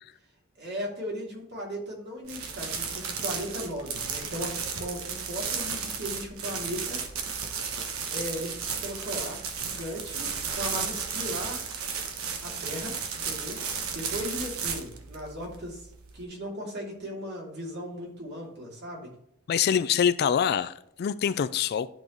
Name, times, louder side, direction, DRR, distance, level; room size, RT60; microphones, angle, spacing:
voice 1, 0.6-7.0 8.1-11.8 12.4-12.9 13.2-13.6 13.9-15.9 16.1-19.1, equal, 50° right, 2.5 m, -37 dB
sound 1, 2.2-16.2, right 6 dB, 90° right, 1.1 m, -34 dB
voice 2, 19.5-21.9, left 8 dB, 50° left, 0.3 m, -25 dB
12.0 x 4.0 x 3.0 m
head